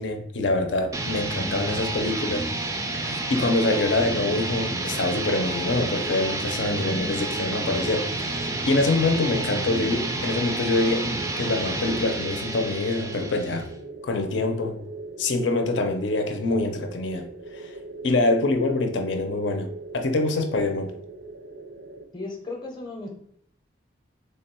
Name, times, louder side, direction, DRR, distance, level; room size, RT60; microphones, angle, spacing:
voice 1, 0.0-2.4 2.9-13.7 14.0-14.8 15.2-17.3 17.5-17.7 18.0-19.7 19.9-20.9, left 2 dB, 90° left, 6 dB, 0.5 m, -25 dB
sound 1, 0.9-13.8, right 2 dB, 15° right, 0.3 m, -30 dB
sound 2, 3.6-22.0, right 3 dB, 75° right, 0.5 m, -41 dB
voice 2, 22.1-23.1, left 2 dB, 25° left, 1 dB, 0.6 m, -35 dB
3.3 x 2.2 x 4.2 m, 0.68 s
head